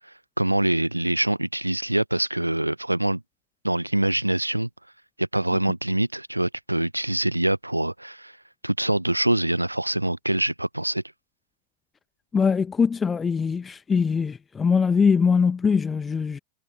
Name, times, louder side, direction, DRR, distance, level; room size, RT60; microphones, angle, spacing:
voice 1, 0.4-3.2 3.6-4.7 5.2-8.3 8.6-11.0, right 1 dB, 85° right, 0.6 m, -24 dB
voice 2, 12.3-16.4, left 5 dB, 15° left, 1.0 m, -22 dB
figure-of-eight pair, 90°, 0 cm